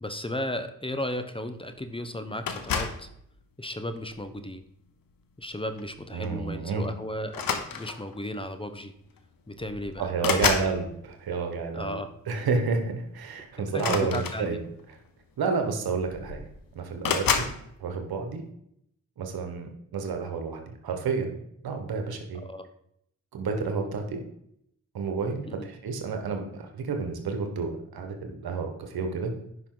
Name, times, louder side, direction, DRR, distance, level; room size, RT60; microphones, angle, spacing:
voice 1, 0.0-3.1 3.6-4.6 5.4-8.9 9.5-10.1 11.7-12.1 13.7-14.6 22.3-22.7 25.5-25.7, left 1 dB, 15° left, 9 dB, 1.0 m, -35 dB
sound 1, 2.5-3.1 4.0-4.3 5.8-5.9 6.2-6.4 7.3-8.2 9.2-9.3 9.6-10.8 13.7-14.8 15.7-15.8 16.0-16.5 17.0-17.6, left 6 dB, 70° left, 1.1 m, -29 dB
voice 2, 6.1-6.9 10.0-12.0 12.3-14.6 15.4-17.5 17.8-18.4 19.2-21.3 21.6-22.4 23.3-24.2 24.9-29.3, right 4 dB, 80° right, 5 dB, 1.4 m, -30 dB
10.0 x 5.7 x 4.0 m, 0.73 s
supercardioid pair, 45°, 36 cm